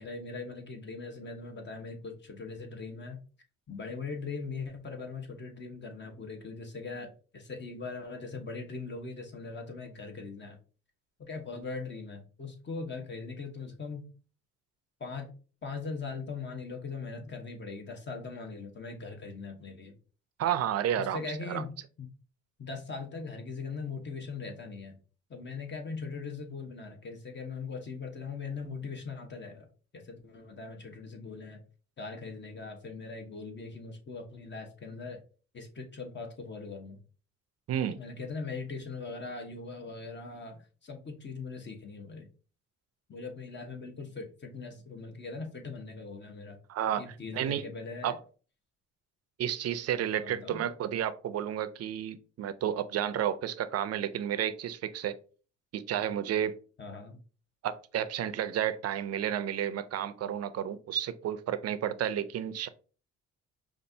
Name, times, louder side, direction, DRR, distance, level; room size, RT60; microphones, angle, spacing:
voice 1, 0.0-3.2 3.7-10.6 11.2-14.1 15.0-15.3 15.6-19.9 21.0-22.1 22.6-25.0 25.3-29.7 29.9-31.6 32.0-35.2 35.5-37.0 38.0-42.3 43.1-46.6 47.0-48.2 50.2-50.6 56.8-57.2, left 4 dB, 35° left, 3 dB, 1.1 m, -40 dB
voice 2, 20.4-21.6 37.7-38.0 46.7-47.0 47.3-47.7 48.0-48.2 49.4-55.2 55.7-56.6 57.6-62.7, right 10 dB, 55° right, 12 dB, 0.5 m, -31 dB
5.2 x 2.5 x 2.7 m, 0.38 s
cardioid pair, 90°, 30 cm